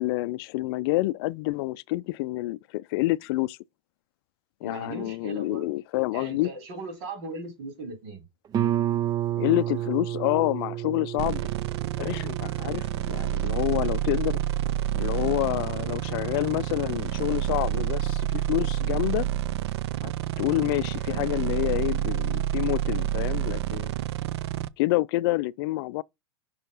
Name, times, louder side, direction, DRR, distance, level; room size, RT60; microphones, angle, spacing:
voice 1, 0.0-3.6 4.6-6.5 9.4-11.4 12.0-14.4 15.0-19.3 20.0-20.1 20.4-24.0 24.8-26.0, left 20 dB, 65° left, 0.4 m, -28 dB
voice 2, 4.6-5.7 6.1-8.2, right 2 dB, 60° right, 4.3 m, -38 dB
Guitar, 8.5-14.0, right 12 dB, 25° right, 0.4 m, -31 dB
sound 1, 11.2-24.7, right 12 dB, 80° right, 0.5 m, -29 dB
5.7 x 4.5 x 5.3 m
supercardioid pair, 120°, 14 cm